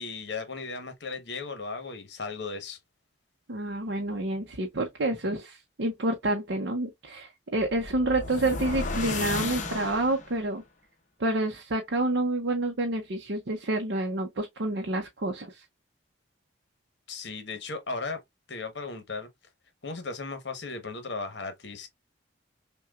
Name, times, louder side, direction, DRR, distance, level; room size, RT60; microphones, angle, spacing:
voice 1, 0.0-2.8 17.1-18.2 18.5-19.3 19.8-21.9, left 4 dB, 65° left, 1.0 m, -36 dB
voice 2, 3.5-10.6 11.2-15.6, right 2 dB, 65° right, 0.7 m, -28 dB
sound 1, 7.6-10.4, left 3 dB, 40° left, 0.7 m, -33 dB
5.7 x 2.2 x 2.3 m
head